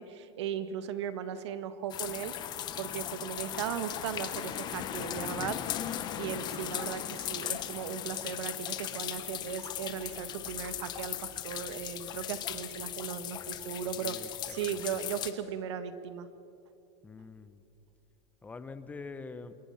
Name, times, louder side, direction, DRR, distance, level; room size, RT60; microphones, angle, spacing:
voice 1, 0.0-2.4 2.8-5.6 6.2-16.3, right 8 dB, 90° right, 11 dB, 1.7 m, -37 dB
sound 1, 1.9-15.3, left 11 dB, 30° left, 1.3 m, -38 dB
voice 2, 14.0-14.8 17.0-17.6 18.4-19.5, left 4 dB, 10° left, 11 dB, 1.0 m, -45 dB
27.0 x 22.0 x 5.8 m, 2.7 s
supercardioid pair, 155°, 14 cm